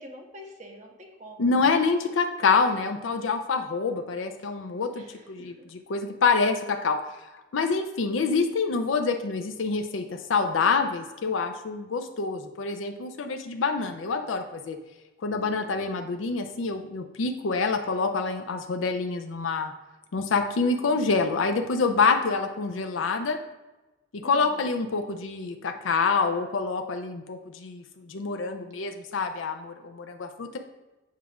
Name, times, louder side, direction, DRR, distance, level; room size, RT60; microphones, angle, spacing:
voice 1, 0.0-1.5 4.9-5.7 24.2-24.6, equal, 40° right, 2 dB, 1.0 m, -47 dB
voice 2, 1.4-7.2 7.5-14.8 15.2-19.7 20.1-23.4 24.1-30.6, left 4 dB, 85° left, 6 dB, 0.5 m, -26 dB
7.3 x 2.5 x 5.7 m, 1.1 s
head